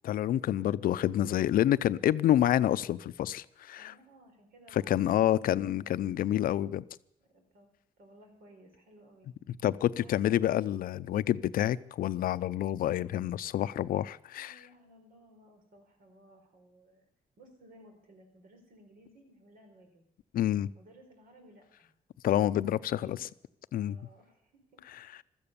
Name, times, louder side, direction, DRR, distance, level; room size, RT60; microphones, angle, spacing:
voice 1, 0.0-3.9 4.7-6.8 9.6-14.5 20.3-20.7 22.2-23.3 23.7-24.0, left 12 dB, 75° left, 17 dB, 0.5 m, -28 dB
voice 2, 3.8-5.6 7.3-7.7 8.0-9.3 10.0-10.5 14.3-17.1 17.4-20.0 20.7-21.9 22.5-23.2 23.8-24.8, right 1 dB, 75° right, 3 dB, 4.5 m, -58 dB
16.0 x 13.0 x 6.9 m, 0.76 s
cardioid pair, 115°, 15 cm